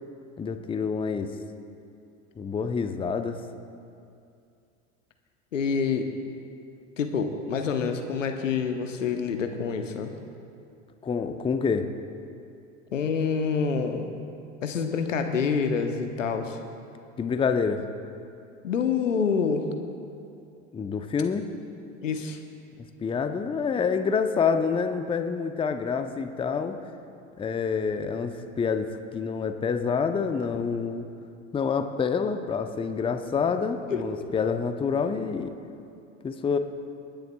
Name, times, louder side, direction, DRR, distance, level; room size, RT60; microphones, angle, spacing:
voice 1, 0.4-1.3 2.4-3.4 11.0-11.9 17.2-17.8 20.7-21.5 23.0-26.8 27.4-31.1 31.5-35.5 36.2-36.6, left 5 dB, 15° left, 8 dB, 0.6 m, -27 dB
voice 2, 5.5-6.1 7.0-10.1 12.9-14.1 14.6-16.6 18.6-19.7 22.0-22.4 33.9-34.0, left 6 dB, 80° left, 6 dB, 1.0 m, -27 dB
27.5 x 10.0 x 2.3 m, 2.5 s
figure-of-eight pair, 80°, 38 cm